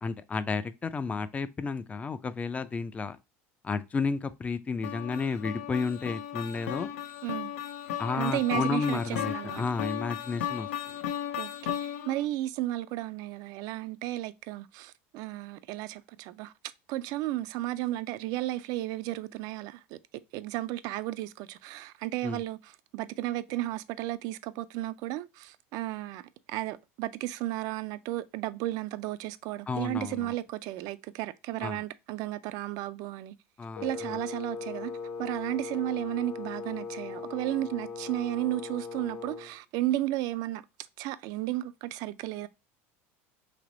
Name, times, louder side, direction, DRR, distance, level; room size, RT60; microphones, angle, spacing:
voice 1, 0.0-3.2 3.6-6.9 8.0-10.7 22.2-22.4 29.7-30.3 31.6-31.8 33.6-34.2, left 4 dB, 20° left, 0.4 m, -32 dB
sound 1, 4.8-12.3, left 10 dB, 90° left, 0.5 m, -35 dB
voice 2, 8.1-9.6 11.4-16.5 16.9-20.0 20.3-33.3 33.8-34.9 35.2-40.6 41.0-42.5, right 15 dB, 60° right, 0.4 m, -33 dB
Wind instrument woodwind instrument, 33.7-39.5, left 5 dB, 70° left, 1.1 m, -39 dB
3.3 x 2.9 x 3.8 m
supercardioid pair, 110°, 7 cm